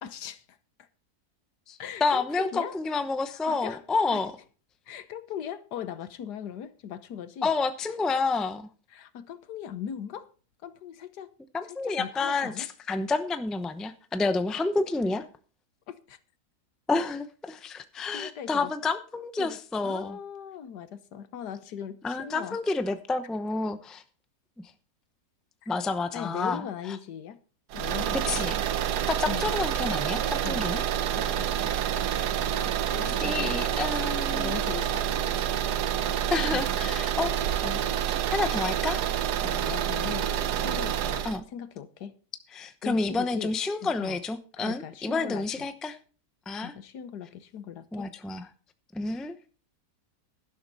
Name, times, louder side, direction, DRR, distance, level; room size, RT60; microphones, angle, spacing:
voice 1, 0.0-0.4 1.8-2.8 3.3-3.8 4.1-4.2 4.9-7.5 8.9-10.3 10.6-11.3 12.0-12.7 15.0-15.1 15.9-16.2 18.1-18.7 19.4-22.6 25.6-25.7 26.1-27.4 27.7-28.7 29.3-29.5 30.4-30.7 31.1-32.2 32.9-33.6 34.3-35.4 36.5-36.6 37.6-37.9 39.4-40.3 40.6-42.2 42.8-43.6 43.8-44.2 44.6-45.7 46.6-48.1, left 8 dB, 85° left, 1.5 m, -39 dB
voice 2, 1.7-4.3 7.4-8.7 11.5-15.2 16.9-20.2 22.0-24.0 25.7-27.0 28.3-28.6 29.1-30.8 33.2-34.5 36.3-37.3 38.1-39.0 41.2-41.4 42.5-46.0 46.5-46.7 47.9-48.5 48.9-49.3, left 3 dB, ahead, 0.4 m, -29 dB
Car Engine Exterior A, 27.7-41.4, right 10 dB, 85° right, 1.4 m, -28 dB
sound 1, 31.1-36.7, right 4 dB, 40° left, 6.1 m, -49 dB
11.5 x 11.5 x 4.0 m
omnidirectional pair, 1.7 m